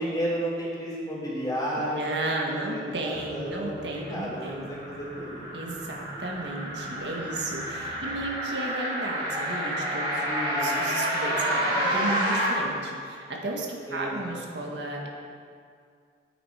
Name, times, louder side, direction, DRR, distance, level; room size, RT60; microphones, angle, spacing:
voice 1, 0.0-5.5 10.3-10.8 13.9-14.4, equal, 20° left, -6 dB, 3.4 m, -33 dB
voice 2, 1.8-4.7 5.5-10.3 10.6-15.1, right 2 dB, 75° right, -1 dB, 1.7 m, -34 dB
sound 1, 3.1-8.2, equal, 80° left, 2.2 m, -47 dB
sound 2, 4.1-12.5, equal, 30° right, 3.2 m, -29 dB
11.5 x 8.8 x 5.0 m, 2.2 s
head